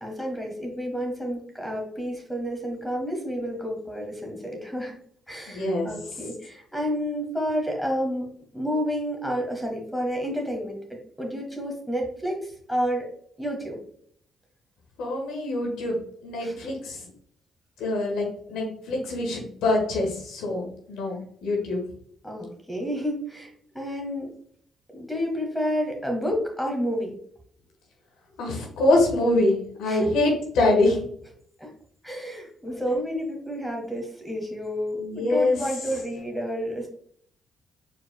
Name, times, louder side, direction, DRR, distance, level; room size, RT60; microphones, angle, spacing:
voice 1, 0.0-5.0 5.3-13.1 13.4-13.8 16.4-16.7 22.2-24.3 24.9-27.1 29.8-30.1 31.6-31.7 32.0-36.9, equal, 5° left, 1 dB, 1.4 m, -30 dB
voice 2, 5.5-5.9 15.0-16.0 16.2-17.0 17.8-21.8 28.4-31.0 35.0-35.6, left 2 dB, 90° left, 0 dB, 1.3 m, -24 dB
4.8 x 4.5 x 2.2 m, 0.63 s
cardioid pair, 90°, 0 cm